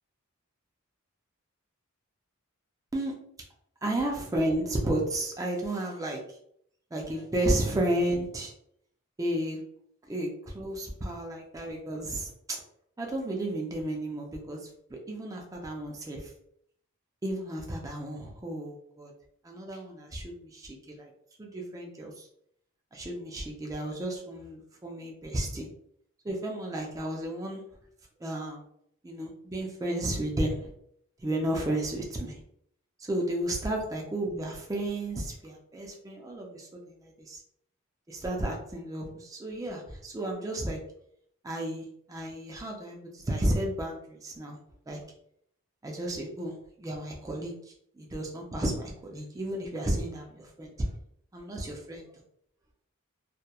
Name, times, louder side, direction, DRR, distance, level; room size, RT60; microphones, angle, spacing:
voice 1, 3.8-6.2 6.9-8.5 9.2-9.6 10.1-12.6 13.0-16.3 17.2-19.1 19.4-21.1 21.4-22.3 22.9-25.7 26.2-27.6 28.2-28.7 29.0-30.7 31.2-32.4 33.0-37.4 38.1-40.8 41.4-44.6 44.9-45.0 45.8-47.5 48.0-50.9 51.3-52.1, right 1 dB, 15° right, 0 dB, 0.4 m, -33 dB
2.8 x 2.1 x 2.2 m, 0.69 s
head